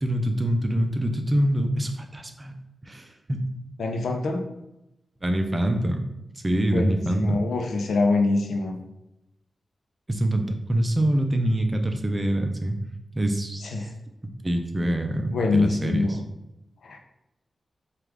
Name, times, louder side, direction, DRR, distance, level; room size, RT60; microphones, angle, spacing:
voice 1, 0.0-2.5 2.8-3.5 5.2-6.1 6.4-7.4 10.1-12.8 13.1-13.7 14.2-16.2, right 1 dB, 25° right, 5 dB, 0.6 m, -25 dB
voice 2, 3.8-4.4 6.7-8.8 13.6-13.9 15.2-16.2 16.8-17.0, left 3 dB, 90° left, 4 dB, 0.6 m, -25 dB
4.7 x 2.4 x 3.5 m, 0.91 s
cardioid pair, 70°, 0 cm